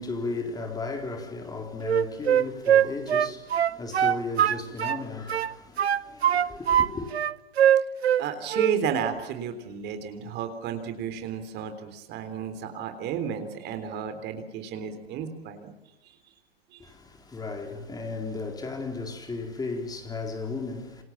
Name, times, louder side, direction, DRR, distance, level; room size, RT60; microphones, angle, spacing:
voice 1, 0.0-7.2 16.8-21.0, left 3 dB, 10° left, 4.1 m, -35 dB
Wind instrument woodwind instrument, 1.8-5.0 5.3-6.9 7.1-8.2 8.5-8.8, right 9 dB, 80° right, 1.0 m, -22 dB
voice 2, 8.2-15.7 16.0-16.2 16.7-16.8, right 7 dB, 35° right, 3.8 m, -32 dB
28.0 x 27.5 x 7.4 m
hypercardioid pair, 120°, 31 cm